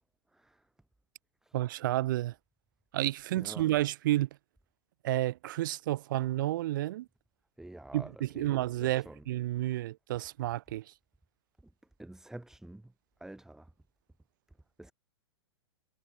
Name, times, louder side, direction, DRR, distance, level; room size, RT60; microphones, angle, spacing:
voice 1, 0.3-0.6 1.4-1.6 3.4-3.7 7.6-9.2 12.0-12.9 13.2-13.7 14.8-14.9, right 1 dB, 5° right, 5.4 m, -48 dB
voice 2, 1.5-2.3 2.9-4.3 5.0-7.1 7.9-10.8, right 15 dB, 45° right, 0.9 m, -31 dB
figure-of-eight pair, 105°, 14 cm